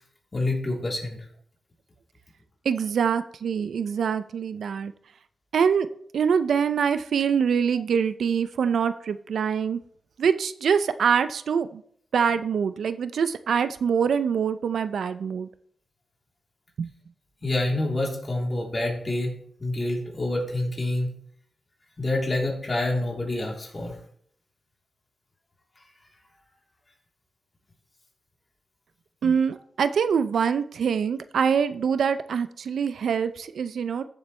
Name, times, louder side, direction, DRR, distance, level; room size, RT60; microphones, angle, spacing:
voice 1, 0.3-1.2 17.4-19.3 19.6-21.1 22.0-23.9, left 2 dB, 35° left, -2 dB, 3.5 m, -27 dB
voice 2, 2.6-4.9 5.5-5.9 6.1-9.8 10.2-11.8 12.1-15.5 16.8-16.9 29.2-34.0, right 7 dB, 80° right, 12 dB, 0.5 m, -24 dB
14.0 x 7.2 x 3.3 m, 0.63 s
cardioid pair, 75°, 0 cm